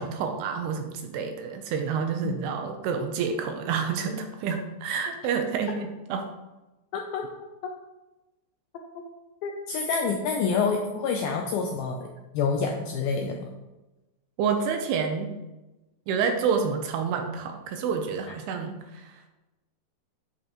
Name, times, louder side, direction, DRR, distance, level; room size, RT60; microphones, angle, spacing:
voice 1, 0.0-6.3 14.4-15.3 16.1-19.3, right 6 dB, 80° right, 5 dB, 2.5 m, -29 dB
voice 2, 6.9-7.2 9.4-12.1 12.3-13.5, left 5 dB, 80° left, 2 dB, 2.1 m, -27 dB
11.0 x 6.4 x 3.0 m, 1.1 s
omnidirectional pair, 4.9 m